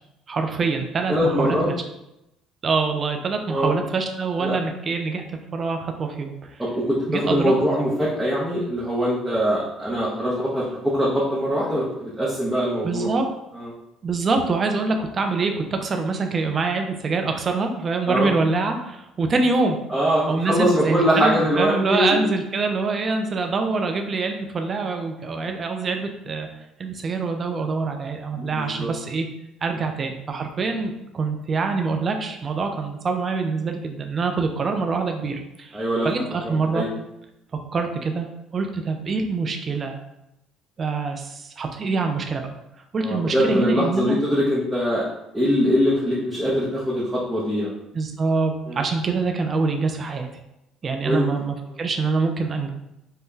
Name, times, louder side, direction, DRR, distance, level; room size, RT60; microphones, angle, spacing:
voice 1, 0.3-1.7 2.6-6.5 7.1-7.5 12.8-13.2 14.0-19.8 20.3-26.5 26.8-29.3 29.6-36.9 37.7-38.3 38.5-40.0 40.8-42.5 42.9-44.2 47.9-50.3 50.8-52.7, right 4 dB, 40° right, 4 dB, 0.5 m, -25 dB
voice 2, 1.1-1.7 3.5-3.7 4.4-4.5 6.6-13.1 13.5-13.7 18.0-18.3 19.9-22.2 28.3-28.9 29.8-29.9 35.7-36.9 43.0-45.1 45.3-47.7 48.7-48.8 51.0-51.3, equal, 10° right, -8 dB, 0.7 m, -23 dB
2.7 x 2.2 x 3.6 m, 0.88 s
supercardioid pair, 80°, 0 cm